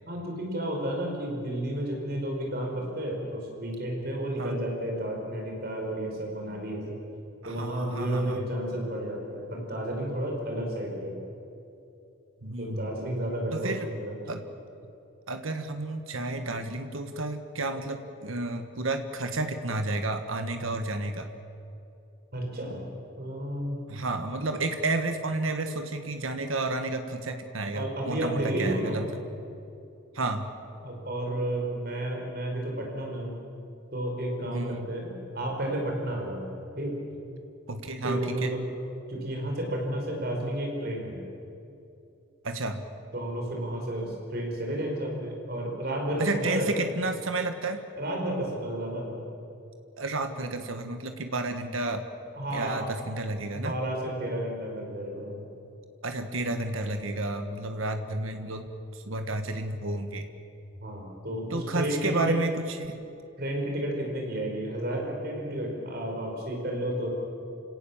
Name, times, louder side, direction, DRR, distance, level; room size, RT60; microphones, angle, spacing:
voice 1, 0.1-7.0 7.4-11.2 12.6-14.4 22.3-22.9 23.2-23.9 27.7-29.0 30.8-33.4 33.9-36.5 36.8-37.0 38.0-38.7 39.1-41.2 43.1-46.7 48.0-49.2 52.4-52.9 53.5-55.5 60.8-62.4 63.4-67.1, right 1 dB, 50° right, 0 dB, 5.3 m, -32 dB
voice 2, 7.4-8.5 12.4-12.9 13.5-13.9 14.3-14.4 15.3-21.3 23.9-29.1 30.1-30.5 34.4-34.9 37.7-38.5 42.4-42.8 46.2-47.8 50.0-52.0 52.5-53.7 56.0-60.3 61.5-62.5 62.8-63.0, right 2 dB, 85° right, 7 dB, 1.6 m, -31 dB
29.0 x 18.0 x 7.3 m, 2.7 s
head